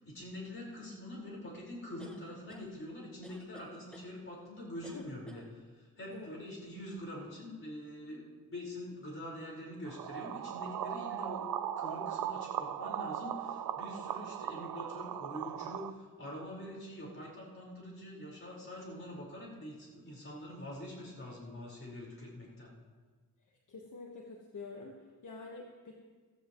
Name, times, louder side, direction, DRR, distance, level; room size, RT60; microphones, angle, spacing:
voice 1, 0.0-11.5 11.8-22.7, left 1 dB, 40° left, -4 dB, 4.7 m, -45 dB
sound 1, 2.0-2.7 3.2-4.1 4.8-5.5, right 1 dB, 5° left, 1.4 m, -53 dB
sound 2, 9.8-15.9, right 10 dB, 80° right, 0.6 m, -38 dB
voice 2, 23.5-25.0 25.2-25.9, left 3 dB, 65° left, 0 dB, 1.4 m, -47 dB
16.0 x 15.5 x 3.1 m, 1.5 s
wide cardioid pair, 100°, 34 cm